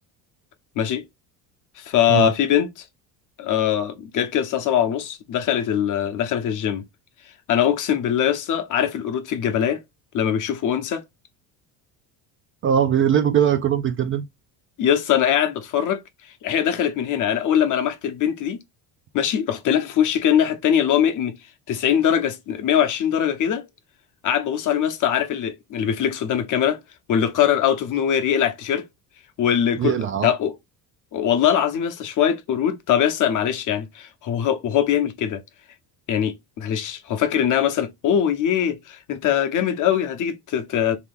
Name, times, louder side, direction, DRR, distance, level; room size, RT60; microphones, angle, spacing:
voice 1, 1.8-2.7 3.4-6.8 7.5-9.8 10.1-11.0 14.8-16.0 16.4-18.6 19.1-21.3 21.7-23.6 24.2-26.8 27.1-28.9 29.4-30.5 31.1-35.4 36.1-41.0, left 9 dB, 50° left, 0.9 m, -22 dB
voice 2, 12.6-14.3 29.8-30.3, right 9 dB, 30° right, 0.4 m, -20 dB
3.2 x 2.9 x 3.5 m
cardioid pair, 120°, 41 cm